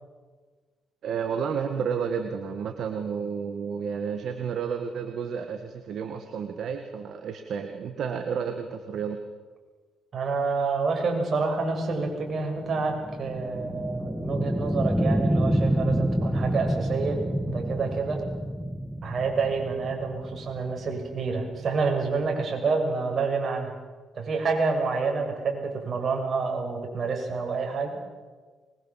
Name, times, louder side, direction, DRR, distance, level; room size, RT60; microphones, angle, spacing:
voice 1, 1.0-9.2, right 6 dB, 65° right, 6 dB, 1.9 m, -31 dB
voice 2, 10.1-17.2 17.5-18.2 19.0-23.7 24.1-27.9, right 4 dB, 50° right, 2 dB, 6.8 m, -28 dB
sound 1, 11.6-22.3, equal, 5° right, 2.1 m, -28 dB
24.0 x 22.5 x 7.6 m, 1.4 s
cardioid pair, 90°, 0 cm